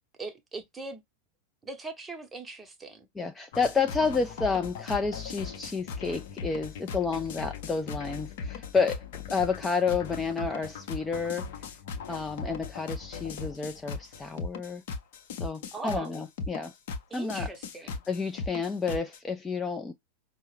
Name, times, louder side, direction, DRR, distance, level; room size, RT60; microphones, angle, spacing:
voice 1, 0.2-1.0 1.6-3.1 15.7-16.2 17.1-18.0, right 3 dB, 15° right, 0.8 m, -40 dB
voice 2, 3.2-11.5 12.1-14.8 15.4-16.7 17.1-17.5 18.1-19.9, left 5 dB, 10° left, 0.4 m, -30 dB
sound 1, 3.5-19.2, left 5 dB, 50° left, 0.7 m, -38 dB
5.3 x 2.0 x 3.1 m
figure-of-eight pair, 90°, 0 cm